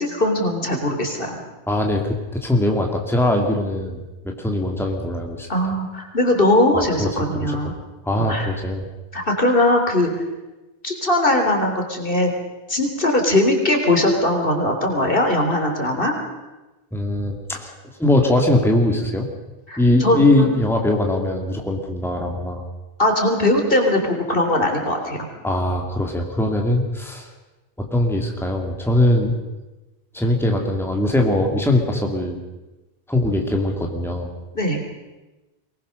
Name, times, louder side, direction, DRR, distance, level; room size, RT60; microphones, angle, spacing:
voice 1, 0.0-1.4 5.5-7.7 8.2-8.5 9.1-10.1 10.8-12.3 12.7-16.1 19.7-20.5 23.0-25.2 34.5-34.8, left 1 dB, 60° left, 3 dB, 3.8 m, -20 dB
voice 2, 1.7-5.5 6.7-7.1 7.3-7.7 8.0-8.8 16.9-17.7 18.0-19.3 19.8-22.6 25.4-27.3 27.8-29.3 30.1-32.4 33.1-34.3, left 1 dB, ahead, 1 dB, 2.5 m, -21 dB
23.5 x 20.0 x 6.6 m, 1.1 s
omnidirectional pair, 1.1 m